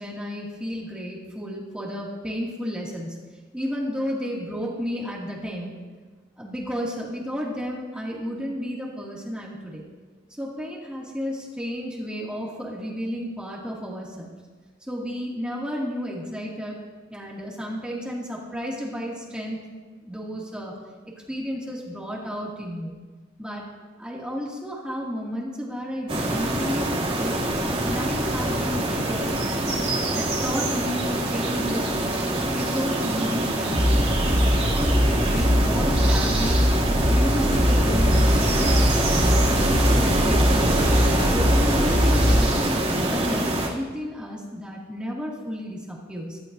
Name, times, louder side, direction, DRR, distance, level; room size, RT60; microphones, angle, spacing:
voice 1, 0.0-3.2 3.5-5.8 6.4-9.8 10.3-14.3 14.8-16.8 17.1-19.6 20.0-20.8 21.3-23.0 23.4-23.7 24.0-27.4 27.9-32.3 32.5-34.3 34.7-36.7 37.1-38.8 39.1-40.8 41.3-46.4, equal, 5° right, -5 dB, 2.3 m, -32 dB
sound 1, 26.1-43.7, right 1 dB, 30° right, 2.6 m, -25 dB
sound 2, 33.7-42.4, equal, 65° left, 3.8 m, -21 dB
24.0 x 12.5 x 2.7 m, 1.4 s
head